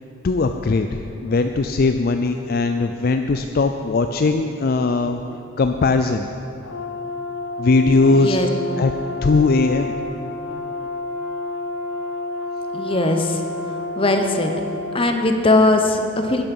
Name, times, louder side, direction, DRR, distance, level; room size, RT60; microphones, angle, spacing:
voice 1, 0.2-5.2 5.6-6.3 7.6-8.4 8.8-8.9 9.2-9.9, left 3 dB, 50° left, 7 dB, 0.4 m, -19 dB
Brass instrument, 6.6-15.1, left 2 dB, 70° left, 1.0 m, -30 dB
voice 2, 8.1-8.8 12.7-13.4 14.0-14.5 14.9-16.4, left 2 dB, 25° left, 5 dB, 0.9 m, -19 dB
12.5 x 10.5 x 5.4 m, 2.8 s
head